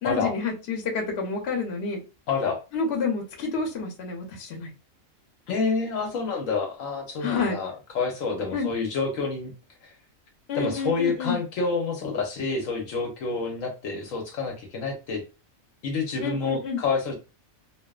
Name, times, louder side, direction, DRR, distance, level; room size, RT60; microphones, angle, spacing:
voice 1, 0.0-2.0 2.7-4.7 7.2-7.6 8.5-8.7 10.5-11.4 16.2-16.8, left 4 dB, 55° left, 0 dB, 0.9 m, -29 dB
voice 2, 2.3-2.6 5.5-9.5 10.5-15.2 15.8-17.1, left 4 dB, 75° left, 2 dB, 1.1 m, -28 dB
2.8 x 2.0 x 2.3 m, 0.30 s
omnidirectional pair, 1.4 m